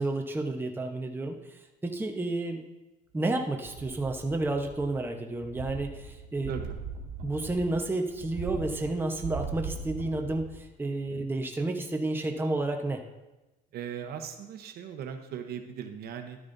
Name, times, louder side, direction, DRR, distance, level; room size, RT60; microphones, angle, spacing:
voice 1, 0.0-2.6 3.1-6.5 7.2-13.0, right 2 dB, 10° right, 3 dB, 1.0 m, -31 dB
sound 1, 3.6-5.1 5.4-10.7 11.0-11.1, right 5 dB, 85° right, 1.8 m, -40 dB
voice 2, 13.7-16.4, right 8 dB, 70° right, 6 dB, 1.0 m, -38 dB
12.0 x 9.5 x 2.7 m, 1.0 s
cardioid pair, 110°, 17 cm